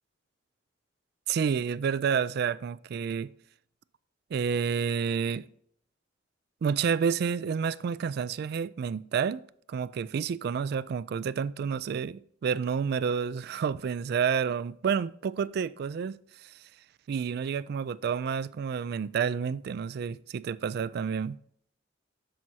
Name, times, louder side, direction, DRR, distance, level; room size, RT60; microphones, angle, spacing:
voice 1, 1.3-3.3 4.3-5.4 6.6-9.4 9.7-16.5 17.1-21.4, right 6 dB, 55° right, 0.3 m, -29 dB
7.6 x 7.3 x 2.8 m
head